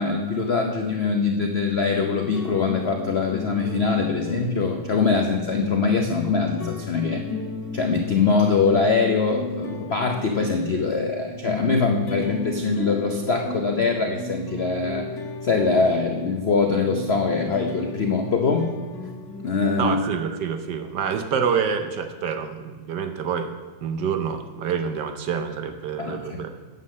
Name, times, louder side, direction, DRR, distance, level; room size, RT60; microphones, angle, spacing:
voice 1, 0.0-7.2 7.7-15.1 15.4-18.7 19.4-20.0 26.0-26.4, left 4 dB, 75° left, 3 dB, 0.5 m, -23 dB
sound 1, 2.3-19.6, left 3 dB, 40° left, 1.7 m, -34 dB
voice 2, 19.8-23.5 23.8-26.5, right 6 dB, 65° right, 7 dB, 1.2 m, -27 dB
9.6 x 7.4 x 6.3 m, 1.4 s
omnidirectional pair, 2.2 m